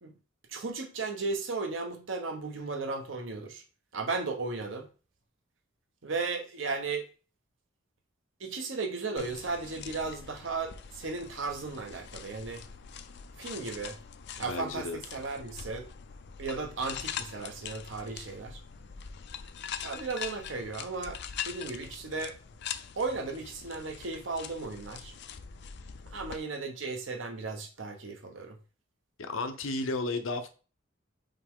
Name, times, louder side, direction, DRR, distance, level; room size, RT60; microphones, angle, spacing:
voice 1, 0.5-3.6 3.9-4.9 6.0-7.1 8.4-12.6 13.4-14.0 14.4-15.9 16.4-18.6 19.8-21.2 21.5-22.4 23.0-25.1 26.1-28.6, right 3 dB, 70° right, 1.1 m, -35 dB
sound 1, 9.2-26.4, left 8 dB, 60° left, 0.5 m, -43 dB
voice 2, 14.4-15.0 29.3-30.5, left 2 dB, 85° left, 0.9 m, -33 dB
5.5 x 4.6 x 3.7 m
head